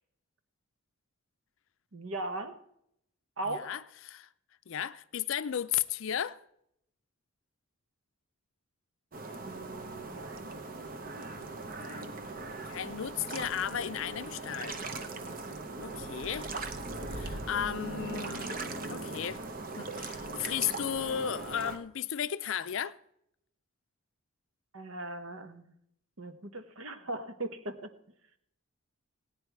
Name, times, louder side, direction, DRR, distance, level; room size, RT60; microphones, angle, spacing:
voice 1, 1.9-2.6 3.4-3.8 9.4-10.5 24.7-25.6 26.2-27.9, right 2 dB, 65° right, 1.1 m, -39 dB
voice 2, 3.5-4.3 4.7-6.4 11.8-12.1 12.7-14.8 15.8-16.5 17.1-19.4 19.8-23.0, left 9 dB, 65° left, 0.4 m, -35 dB
sound 1, 9.1-21.8, right 3 dB, 40° right, 0.8 m, -39 dB
17.5 x 9.5 x 4.6 m
head